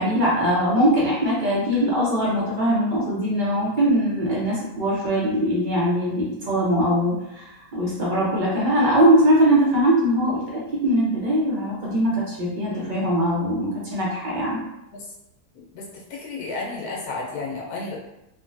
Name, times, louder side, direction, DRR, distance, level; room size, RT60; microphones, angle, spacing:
voice 1, 0.0-14.6, equal, 45° right, -6 dB, 0.6 m, -21 dB
voice 2, 12.7-13.0 14.9-15.0 15.5-15.8 16.1-18.0, left 3 dB, 85° left, -2 dB, 1.3 m, -32 dB
3.4 x 2.1 x 2.6 m, 0.90 s
omnidirectional pair, 1.6 m